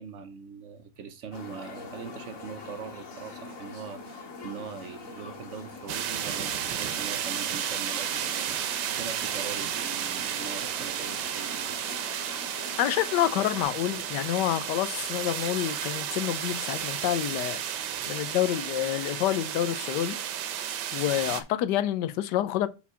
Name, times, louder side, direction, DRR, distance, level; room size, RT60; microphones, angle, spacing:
voice 1, 0.0-11.8, right 6 dB, 60° right, 0.8 m, -42 dB
sound 1, 1.3-13.6, left 3 dB, 50° left, 2.0 m, -44 dB
sound 2, 5.9-21.4, right 10 dB, 80° right, 1.4 m, -32 dB
voice 2, 12.8-20.2 20.9-22.7, left 12 dB, 85° left, 1.2 m, -28 dB
5.8 x 4.2 x 5.5 m
omnidirectional pair, 1.8 m